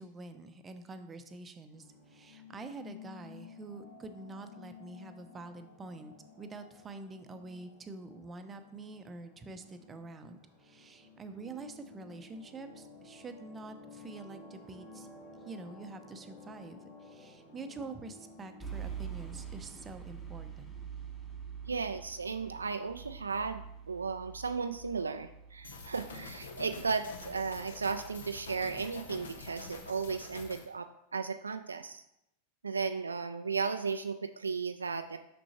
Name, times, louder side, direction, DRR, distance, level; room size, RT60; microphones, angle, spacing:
voice 1, 0.0-15.1 15.4-20.7, right 3 dB, 20° right, 8 dB, 0.6 m, -46 dB
sound 1, 1.7-20.1, left 4 dB, 45° left, 2.2 m, -54 dB
sound 2, 18.6-30.5, right 7 dB, 10° left, 1.1 m, -47 dB
voice 2, 21.7-32.0 32.6-35.2, right 5 dB, 75° right, 8 dB, 0.3 m, -35 dB
sound 3, 25.6-30.7, left 4 dB, 65° left, 0.9 m, -47 dB
6.2 x 6.0 x 3.0 m, 0.81 s
figure-of-eight pair, 90°, 0 cm